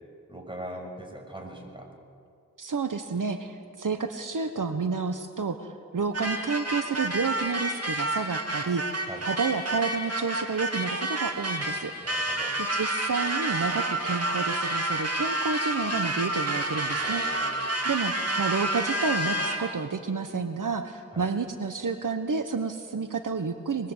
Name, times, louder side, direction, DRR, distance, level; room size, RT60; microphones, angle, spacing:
voice 1, 0.3-1.9 9.0-9.2 12.0-12.6 17.0-17.7 21.1-21.3, right 1 dB, 15° right, 2 dB, 6.4 m, -41 dB
voice 2, 2.6-11.9 12.7-17.2 17.8-23.9, right 5 dB, 75° right, 8 dB, 1.2 m, -30 dB
sound 1, 6.1-19.8, right 1 dB, 50° right, 2.9 m, -29 dB
25.5 x 21.0 x 8.2 m, 2.4 s
cardioid pair, 40°, 32 cm